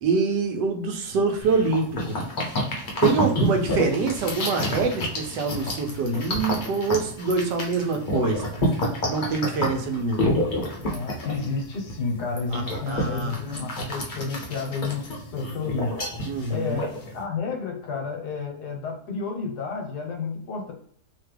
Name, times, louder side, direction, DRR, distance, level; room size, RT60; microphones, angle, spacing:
voice 1, 0.0-2.2 3.0-8.7 9.1-10.4 12.5-13.4 16.3-16.8, right 4 dB, 85° right, 3 dB, 1.3 m, -25 dB
sound 1, 1.4-17.2, left 1 dB, 40° left, 0.7 m, -29 dB
voice 2, 10.9-15.9 16.5-20.7, left 4 dB, 70° left, 2 dB, 1.4 m, -31 dB
3.2 x 2.2 x 3.3 m, 0.62 s
omnidirectional pair, 1.8 m